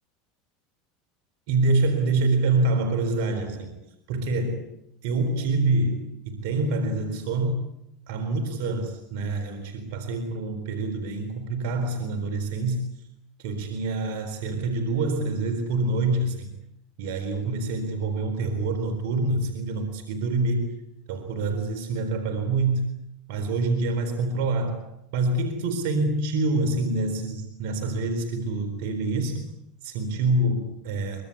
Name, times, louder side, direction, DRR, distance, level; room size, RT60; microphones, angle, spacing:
voice 1, 1.5-3.8 4.1-4.7 5.0-7.6 8.1-12.8 13.4-16.5 17.0-20.7 21.1-23.0 23.3-24.8 25.1-29.5 29.8-31.2, right 2 dB, 70° right, 9 dB, 4.1 m, -26 dB
24.0 x 22.5 x 8.6 m, 0.78 s
hypercardioid pair, 100°, 0 cm